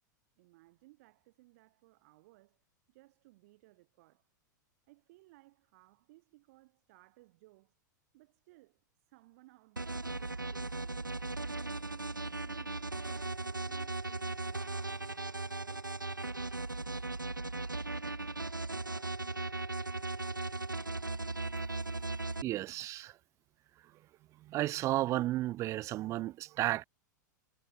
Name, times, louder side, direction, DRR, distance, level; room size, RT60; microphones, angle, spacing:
voice 1, 0.4-2.6 2.9-4.3 4.9-7.8 8.1-8.8 9.1-11.4 11.7-16.0, right 21 dB, 50° right, 5.8 m, -62 dB
sound 1, 9.8-22.4, right 3 dB, 90° right, 0.7 m, -38 dB
voice 2, 22.4-23.1 24.5-26.9, right 15 dB, 30° right, 0.4 m, -33 dB
figure-of-eight pair, 95°, 10 cm